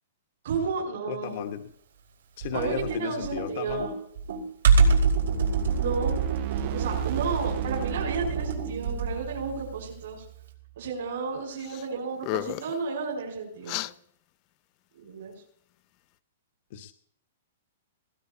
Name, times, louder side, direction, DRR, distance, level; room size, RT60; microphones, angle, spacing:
voice 1, 0.4-1.6 2.5-3.9 5.7-6.2 6.5-10.2 10.8-13.8 15.0-15.3, right 4 dB, 70° right, -2 dB, 5.0 m, -32 dB
voice 2, 1.1-1.6 2.4-3.8 16.7-16.9, left 9 dB, 55° left, 6 dB, 1.3 m, -34 dB
Computer keyboard, 2.4-9.3, right 4 dB, 90° right, 4.6 m, -25 dB
sound 1, 4.7-10.9, right 20 dB, 40° right, 0.5 m, -35 dB
sound 2, 11.6-11.9 12.2-12.8 13.7-13.9, left 18 dB, 35° left, 0.5 m, -33 dB
20.5 x 18.0 x 2.9 m, 0.67 s
hypercardioid pair, 150°, 0 cm